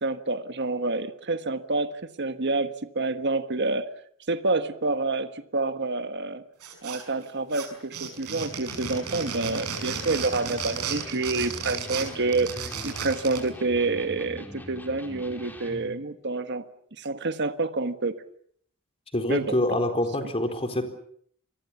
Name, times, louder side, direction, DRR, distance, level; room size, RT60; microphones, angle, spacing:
voice 1, 0.0-3.9 4.3-6.4 6.8-16.6 17.0-18.2 19.3-19.8, right 3 dB, 50° right, 10 dB, 1.4 m, -28 dB
sound 1, 6.6-7.2 7.5-13.5, right 6 dB, 90° right, 6.2 m, -34 dB
Electric guitar, 8.7-16.0, equal, 10° left, 3.7 m, -43 dB
voice 2, 19.1-20.8, left 1 dB, 25° left, 6 dB, 4.0 m, -26 dB
28.5 x 22.0 x 7.2 m, 0.63 s
head